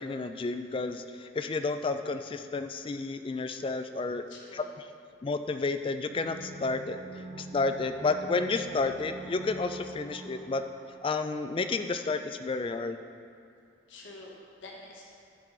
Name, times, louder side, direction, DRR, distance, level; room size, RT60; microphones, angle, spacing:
voice 1, 0.0-4.2 4.5-4.6 5.2-7.0 7.4-10.6 11.0-13.0, left 3 dB, 25° left, 9 dB, 0.3 m, -31 dB
voice 2, 4.3-4.7 13.9-15.1, left 2 dB, 70° left, -2 dB, 1.2 m, -47 dB
sound 1, 6.0-11.7 12.0-12.1, right 2 dB, 85° right, 1.0 m, -45 dB
14.0 x 4.7 x 3.9 m, 2.4 s
head